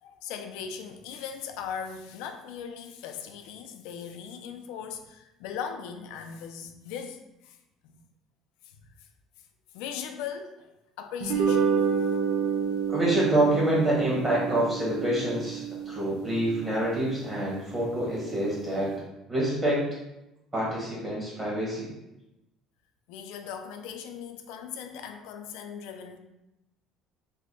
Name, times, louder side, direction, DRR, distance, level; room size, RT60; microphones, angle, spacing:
voice 1, 0.0-7.6 7.8-8.0 9.7-10.7 11.0-12.1 23.1-26.2, left 7 dB, 85° left, 6 dB, 0.3 m, -39 dB
sound 1, 11.2-17.7, right 6 dB, 90° right, 0.5 m, -29 dB
voice 2, 12.9-19.0 19.3-19.8 20.5-21.9, right 1 dB, 15° right, -6 dB, 1.3 m, -27 dB
3.6 x 2.1 x 3.7 m, 0.92 s
cardioid pair, 150°, 0 cm